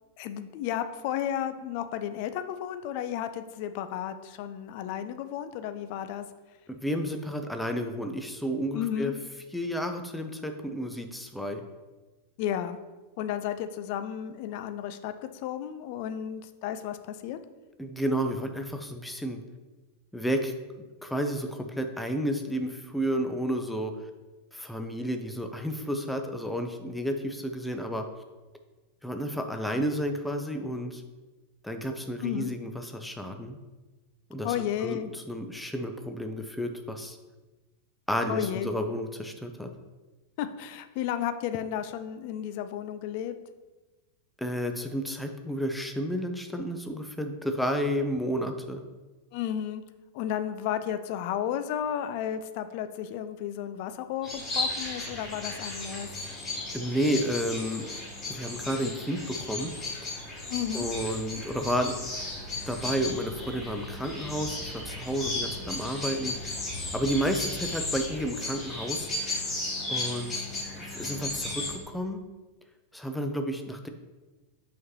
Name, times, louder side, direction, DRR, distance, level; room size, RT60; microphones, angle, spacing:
voice 1, 0.2-6.2 8.7-9.1 12.4-12.8 13.2-15.1 15.4-17.4 32.2-32.5 34.4-35.1 38.3-38.7 40.4-43.3 49.3-49.8 50.1-56.1 60.5-60.9, left 10 dB, 45° left, 10 dB, 0.4 m, -33 dB
voice 2, 6.7-9.1 9.5-11.6 17.8-19.4 20.1-23.9 24.5-28.1 29.0-31.0 31.6-33.6 34.3-35.0 35.3-37.2 38.1-39.7 44.4-48.8 56.7-57.9 58.3-59.7 60.7-62.0 62.7-66.5 66.9-69.1 69.9-70.5 70.9-72.2 72.9-73.9, equal, 5° left, 5 dB, 0.6 m, -31 dB
sound 1, 54.2-71.7, left 2 dB, 25° left, 2.0 m, -35 dB
6.3 x 5.1 x 3.0 m, 1.2 s
figure-of-eight pair, 90°, 0 cm